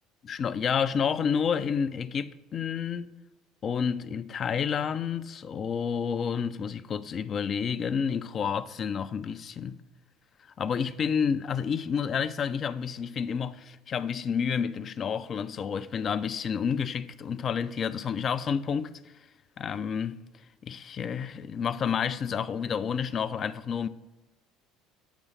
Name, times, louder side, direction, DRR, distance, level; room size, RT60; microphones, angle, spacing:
voice 1, 0.2-3.1 3.6-9.8 10.6-19.0 19.6-20.2 20.6-23.9, left 7 dB, 40° left, 0.3 m, -30 dB
9.0 x 3.1 x 5.7 m
figure-of-eight pair, 60°, 0 cm